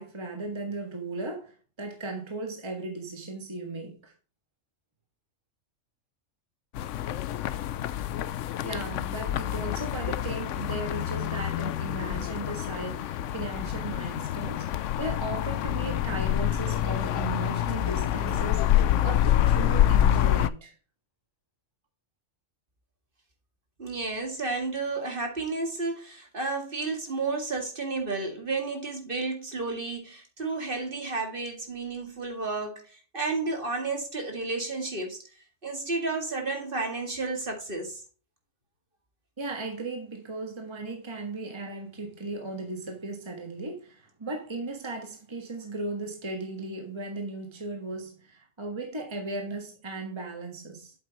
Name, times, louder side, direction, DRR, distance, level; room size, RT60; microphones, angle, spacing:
voice 1, 0.0-4.1 8.6-20.7 39.4-50.9, right 2 dB, 25° right, 1.5 m, -36 dB
sound 1, 6.7-20.5, left 11 dB, 80° left, 0.9 m, -27 dB
sound 2, 16.3-19.0, equal, 30° left, 2.0 m, -44 dB
voice 2, 23.8-32.8 33.1-35.2 35.6-38.0, right 3 dB, 45° right, 2.2 m, -32 dB
8.6 x 7.8 x 3.0 m
omnidirectional pair, 1.3 m